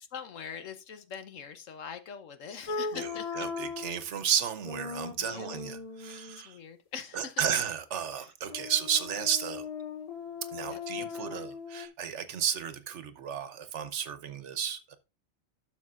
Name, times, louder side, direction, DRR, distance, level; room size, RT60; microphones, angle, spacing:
voice 1, 0.1-3.5 5.1-5.6 6.4-7.4 8.2-8.3 10.7-11.5, left 7 dB, 85° left, 1.3 m, -43 dB
sound 1, 2.7-4.1 4.6-6.4 8.5-11.9, left 5 dB, 40° left, 0.6 m, -38 dB
voice 2, 2.9-6.6 7.1-9.6 10.5-15.0, right 8 dB, 70° right, 1.1 m, -33 dB
12.0 x 6.4 x 2.4 m
omnidirectional pair, 1.3 m